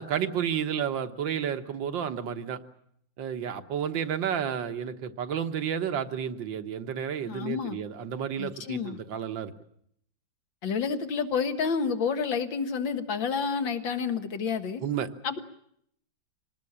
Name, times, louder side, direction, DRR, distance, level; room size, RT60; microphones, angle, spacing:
voice 1, 0.0-2.6 3.2-9.5 14.8-15.1, right 8 dB, 80° right, 1.9 m, -31 dB
voice 2, 7.3-7.8 8.4-9.0 10.6-14.8 15.2-15.4, left 6 dB, 85° left, 2.3 m, -29 dB
26.0 x 19.0 x 8.7 m
omnidirectional pair, 2.0 m